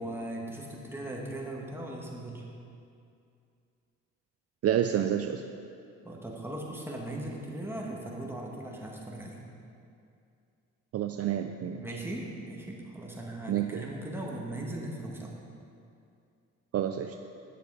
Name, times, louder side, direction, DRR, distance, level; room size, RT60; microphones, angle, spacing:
voice 1, 0.0-2.4 6.0-9.4 11.8-15.3, right 1 dB, 10° right, -2 dB, 1.7 m, -38 dB
voice 2, 4.6-5.4 10.9-11.9 13.5-13.8 16.7-17.2, right 10 dB, 55° right, 6 dB, 0.5 m, -29 dB
9.8 x 6.7 x 4.9 m, 2.5 s
cardioid pair, 90°, 30 cm